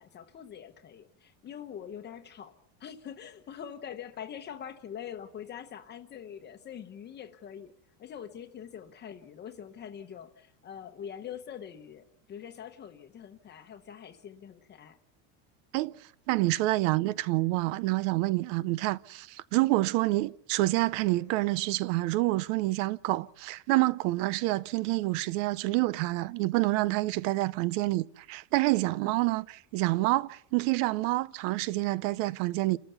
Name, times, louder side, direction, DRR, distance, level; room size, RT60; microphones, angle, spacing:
voice 1, 0.0-2.5 2.8-7.7 8.0-15.0, left 8 dB, 25° left, 1.0 m, -44 dB
voice 2, 16.3-32.8, right 19 dB, 70° right, 0.7 m, -27 dB
28.5 x 13.5 x 7.0 m
cardioid pair, 165°, 40 cm